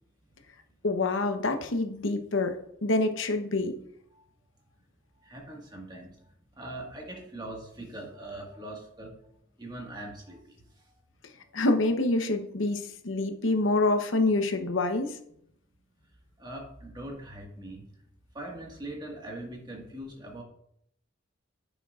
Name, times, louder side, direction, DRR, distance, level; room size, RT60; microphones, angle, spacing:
voice 1, 0.8-2.5 2.8-3.7 11.5-15.2, left 2 dB, 70° left, 6 dB, 0.9 m, -26 dB
voice 2, 5.2-6.2 6.5-9.1 9.6-11.0 16.4-17.8 18.3-20.4, right 1 dB, 20° right, 0 dB, 1.6 m, -41 dB
9.7 x 7.1 x 2.4 m, 0.72 s
head